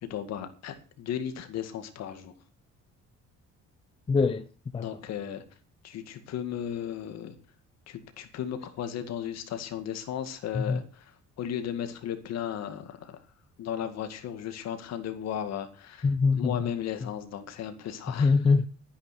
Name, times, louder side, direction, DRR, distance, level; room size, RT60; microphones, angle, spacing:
voice 1, 0.0-2.3 4.7-5.4 5.8-7.4 7.9-13.2 13.6-16.1 16.3-18.3, left 9 dB, 60° left, 2.1 m, -35 dB
voice 2, 4.1-4.5 4.7-4.9 10.5-10.8 16.0-16.6 18.2-18.7, left 4 dB, 20° left, 0.6 m, -23 dB
13.0 x 10.0 x 5.9 m
cardioid pair, 165°, 29 cm